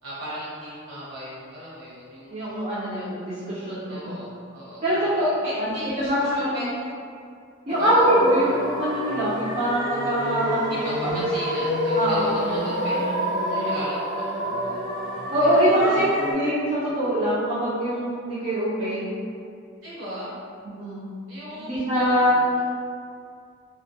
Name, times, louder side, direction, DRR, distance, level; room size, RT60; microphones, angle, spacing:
voice 1, 0.0-2.4 3.9-6.9 7.8-8.1 10.8-13.1 13.5-14.0 14.4-14.8 15.4-16.0 19.8-20.3 21.3-22.4, equal, 80° right, -10 dB, 1.0 m, -37 dB
voice 2, 2.3-4.2 4.8-5.3 5.6-5.7 6.0-6.2 7.7-11.2 11.9-12.7 13.4-13.5 15.3-19.0 20.6-21.0 21.6-22.4, equal, 30° right, -10 dB, 0.4 m, -23 dB
sound 1, 7.7-16.3, equal, 45° left, 0.6 m, -28 dB
2.1 x 2.1 x 2.7 m, 2.3 s
head